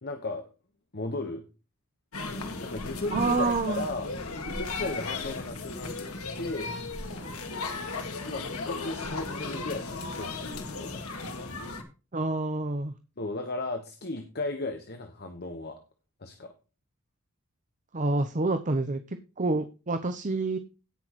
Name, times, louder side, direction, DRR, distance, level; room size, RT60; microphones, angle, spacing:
voice 1, 0.0-0.5 0.9-1.4 2.6-4.1 4.5-5.9 6.4-6.8 8.2-11.1 13.2-15.8 16.2-16.5, left 2 dB, 50° left, 5 dB, 1.3 m, -35 dB
sound 1, 2.1-11.8, left 3 dB, 90° left, 2.1 m, -36 dB
voice 2, 3.1-3.9 12.1-12.9 17.9-20.6, right 3 dB, 35° right, 9 dB, 0.8 m, -28 dB
17.5 x 6.2 x 3.1 m, 0.32 s
head